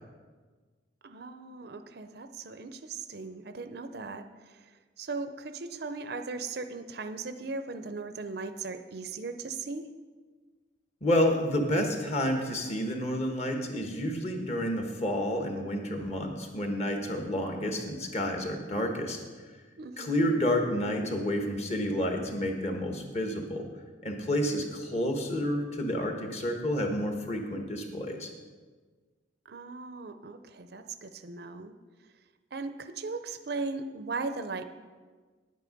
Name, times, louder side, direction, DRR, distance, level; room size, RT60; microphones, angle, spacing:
voice 1, 1.0-4.2 5.0-9.9 19.8-20.3 29.5-31.7 32.5-34.6, right 3 dB, 55° right, 9 dB, 0.6 m, -38 dB
voice 2, 11.0-19.2 20.0-23.7 24.0-28.3, equal, 35° left, 3 dB, 1.3 m, -30 dB
9.9 x 9.2 x 5.2 m, 1.4 s
head